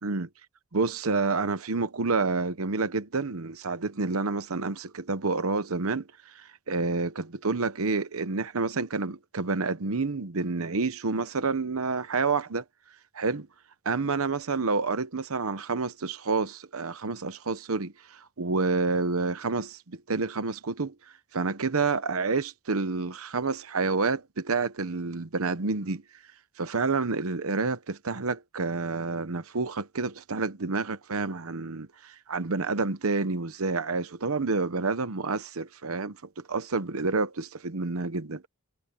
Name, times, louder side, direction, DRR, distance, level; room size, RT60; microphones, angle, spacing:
voice 1, 0.7-12.6 13.1-13.5 13.8-20.9 21.3-26.0 26.6-38.4, right 4 dB, 80° right, 0.9 m, -29 dB
head